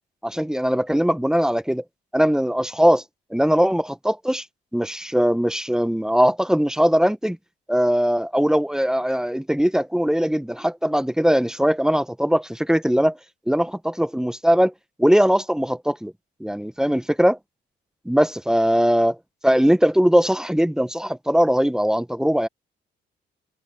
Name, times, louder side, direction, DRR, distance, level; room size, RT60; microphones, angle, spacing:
voice 1, 0.2-1.8 2.1-3.0 3.3-4.4 4.7-7.4 7.7-13.2 13.5-14.7 15.0-16.1 16.4-17.4 18.1-19.2 19.4-22.5, equal, 5° right, 1.0 m, -20 dB
cardioid pair, 90°, 20 cm